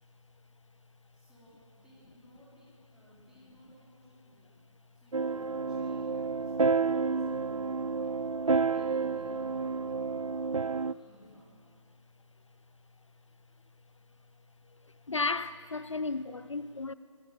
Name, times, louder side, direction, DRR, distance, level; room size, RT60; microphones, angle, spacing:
voice 1, 1.1-4.7 4.9-8.1 8.7-11.6, equal, 5° right, 4.4 m, -60 dB
sound 1, 5.1-10.9, right 4 dB, 80° right, 0.5 m, -30 dB
voice 2, 15.1-16.9, left 3 dB, 65° left, 0.7 m, -33 dB
25.5 x 19.5 x 7.8 m
figure-of-eight pair, 150°, 17 cm